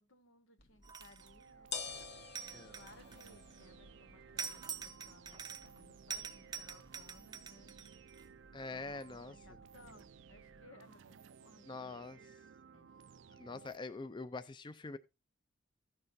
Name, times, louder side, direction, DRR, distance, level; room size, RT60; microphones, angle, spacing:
voice 1, 0.0-1.7 2.7-7.7 8.7-12.4 12.7-13.0, left 2 dB, 90° left, 1.5 m, -62 dB
sound 1, 0.6-10.6, left 5 dB, 55° left, 1.2 m, -52 dB
sound 2, 0.8-1.4 2.4-3.6 4.4-5.8 6.1-8.2, right 6 dB, 20° right, 0.6 m, -45 dB
sound 3, 1.2-13.8, right 6 dB, 65° right, 0.4 m, -58 dB
voice 2, 8.5-9.3 11.7-12.2 13.4-15.0, left 3 dB, 25° left, 0.4 m, -44 dB
15.5 x 6.7 x 2.6 m
head